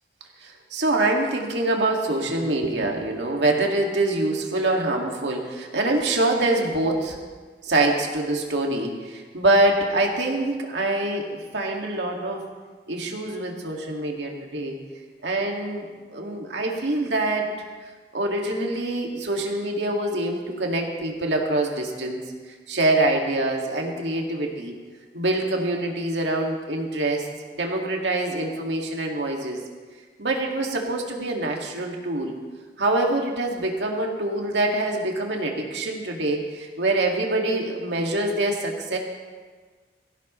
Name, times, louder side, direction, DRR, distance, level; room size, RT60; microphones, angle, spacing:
voice 1, 0.4-7.2 7.6-12.4 12.9-14.8 15.2-17.5 18.1-22.2 22.7-24.7 25.1-27.3 27.5-29.6 30.2-32.3 32.8-39.0, right 2 dB, 85° right, 0 dB, 2.1 m, -25 dB
18.5 x 15.5 x 3.2 m, 1.5 s
head